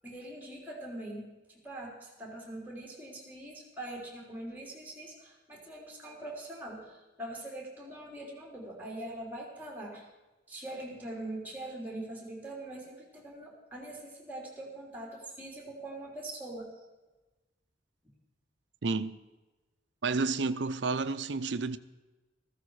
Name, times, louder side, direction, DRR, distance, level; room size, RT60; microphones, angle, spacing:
voice 1, 0.0-10.1 10.5-16.7, right 1 dB, 10° right, 3.5 m, -43 dB
voice 2, 20.0-21.8, right 4 dB, 85° right, 0.6 m, -30 dB
15.0 x 14.0 x 4.8 m
head